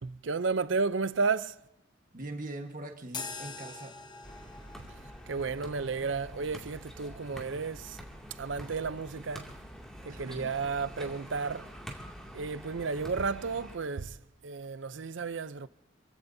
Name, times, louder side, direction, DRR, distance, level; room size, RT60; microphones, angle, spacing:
voice 1, 0.0-1.6 5.3-8.0 8.4-9.5 10.1-11.7 12.3-14.2 14.4-15.7, right 4 dB, 70° right, 0.6 m, -32 dB
voice 2, 2.1-4.0 6.1-6.2 10.1-10.6, right 2 dB, 45° right, 1.4 m, -42 dB
sound 1, 3.1-11.6, left 4 dB, 25° left, 1.0 m, -48 dB
sound 2, 4.2-13.8, equal, 5° left, 2.4 m, -46 dB
27.5 x 16.0 x 2.7 m
head